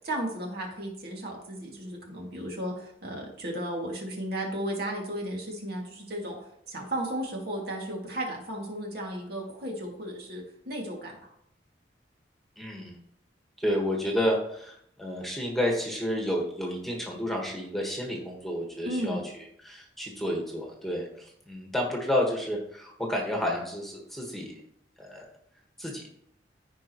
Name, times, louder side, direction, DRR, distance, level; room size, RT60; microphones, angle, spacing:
voice 1, 0.0-6.4 6.7-11.3 18.8-19.2, right 1 dB, 60° right, -1 dB, 2.3 m, -34 dB
voice 2, 12.6-13.0 13.6-24.6 25.0-25.3 25.8-26.1, equal, ahead, -1 dB, 1.6 m, -31 dB
15.0 x 5.0 x 3.1 m, 0.70 s
head